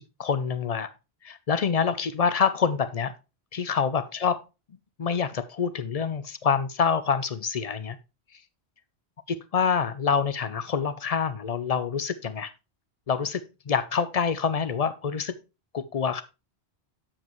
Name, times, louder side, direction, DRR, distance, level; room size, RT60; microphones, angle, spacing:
voice 1, 0.2-0.9 1.2-3.1 3.5-4.3 5.0-8.0 9.3-12.5 13.1-15.4 15.7-16.2, left 6 dB, 45° left, 0.5 m, -26 dB
7.5 x 7.2 x 3.1 m
omnidirectional pair, 1.1 m